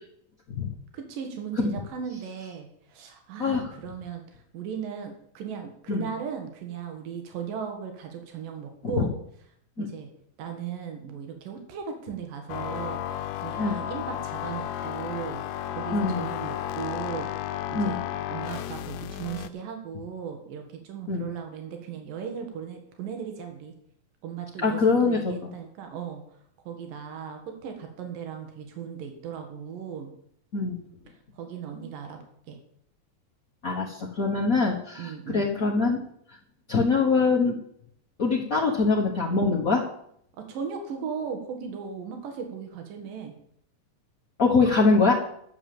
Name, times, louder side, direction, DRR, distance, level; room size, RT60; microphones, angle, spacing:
voice 1, 0.9-4.2 4.5-9.1 9.8-10.1 10.4-15.4 15.7-17.3 17.7-23.7 24.2-26.2 26.7-30.1 31.4-32.2 32.5-32.6 35.0-35.5 40.5-43.4, right 7 dB, 85° right, 5 dB, 3.2 m, -37 dB
voice 2, 3.4-3.7 5.9-6.0 8.8-9.1 9.8-9.9 13.6-13.8 15.9-16.2 17.7-18.0 21.1-21.3 24.6-25.3 30.5-30.8 33.6-36.0 36.7-37.6 38.2-39.8 44.4-45.1, left 4 dB, 55° left, -3 dB, 0.9 m, -23 dB
sound 1, 12.5-19.5, left 11 dB, 80° left, 2.2 m, -33 dB
12.0 x 7.1 x 7.7 m, 0.69 s
omnidirectional pair, 3.8 m